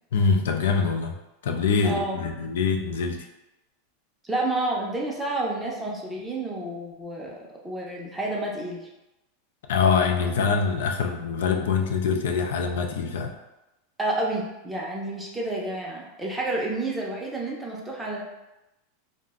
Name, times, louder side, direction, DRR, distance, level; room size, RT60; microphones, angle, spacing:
voice 1, 0.1-1.1 1.4-3.2 9.7-13.3, left 5 dB, 85° left, 4 dB, 0.3 m, -24 dB
voice 2, 1.8-2.2 4.2-8.9 14.0-18.2, right 2 dB, 5° right, -3 dB, 0.5 m, -30 dB
2.4 x 2.0 x 3.5 m, 0.97 s
supercardioid pair, 155°, 0 cm